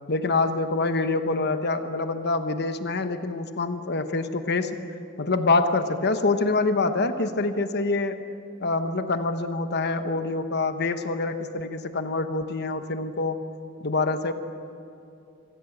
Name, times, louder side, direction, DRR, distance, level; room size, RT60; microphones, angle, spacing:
voice 1, 0.1-4.8 5.2-8.2 8.6-13.4 13.8-14.3, left 3 dB, 55° left, 8 dB, 1.1 m, -25 dB
25.0 x 15.5 x 8.0 m, 2.7 s
head